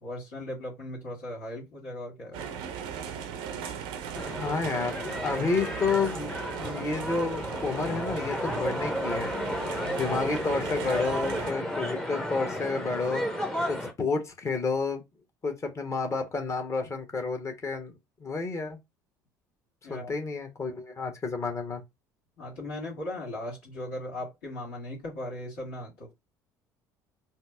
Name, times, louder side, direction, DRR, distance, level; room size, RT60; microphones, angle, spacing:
voice 1, 0.0-2.5 9.8-10.2 19.8-20.1 22.4-26.1, left 1 dB, 70° left, 1.8 m, -38 dB
sound 1, 2.3-11.5, right 7 dB, 65° right, 0.7 m, -38 dB
sound 2, 4.1-13.9, equal, 5° left, 0.9 m, -33 dB
voice 2, 4.4-4.9 5.2-6.3 6.6-9.3 9.9-13.3 13.7-15.0 15.4-17.9 18.2-18.8 19.9-21.8, left 4 dB, 30° left, 1.2 m, -30 dB
4.3 x 2.0 x 3.5 m
figure-of-eight pair, 60°, 10 cm